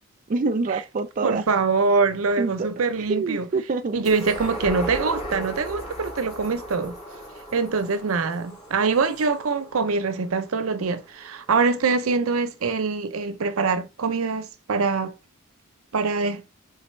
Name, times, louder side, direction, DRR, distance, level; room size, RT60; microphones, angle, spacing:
voice 1, 0.3-1.4 2.4-2.7 3.1-4.0, right 3 dB, 40° right, 0.3 m, -26 dB
voice 2, 1.2-3.5 3.9-6.9 7.5-15.1 15.9-16.4, right 4 dB, 85° right, 0.6 m, -24 dB
sound 1, 4.0-10.8 11.3-11.4, right 1 dB, 35° left, 2.8 m, -36 dB
4.1 x 4.0 x 3.1 m
head